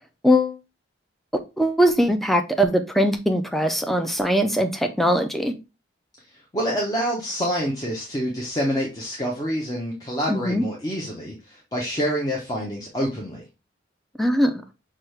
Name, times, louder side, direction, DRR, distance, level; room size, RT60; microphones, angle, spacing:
voice 1, 0.2-0.6 1.6-5.5 10.3-10.6 14.2-14.5, equal, ahead, 0.4 m, -21 dB
voice 2, 6.3-13.4, equal, 20° left, 0.7 m, -27 dB
5.8 x 2.4 x 3.2 m
head